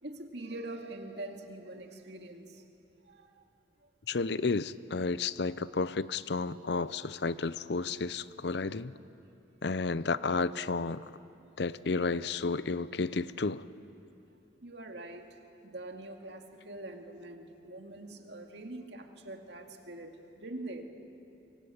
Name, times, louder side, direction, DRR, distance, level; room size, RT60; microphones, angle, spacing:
voice 1, 0.0-2.6 3.1-3.3 14.6-15.3 15.6-20.8, right 2 dB, 65° right, 3 dB, 2.3 m, -44 dB
voice 2, 4.1-8.9 9.6-11.0 11.6-13.6, left 4 dB, 60° left, 16 dB, 0.6 m, -32 dB
24.5 x 24.0 x 8.6 m, 2.8 s
head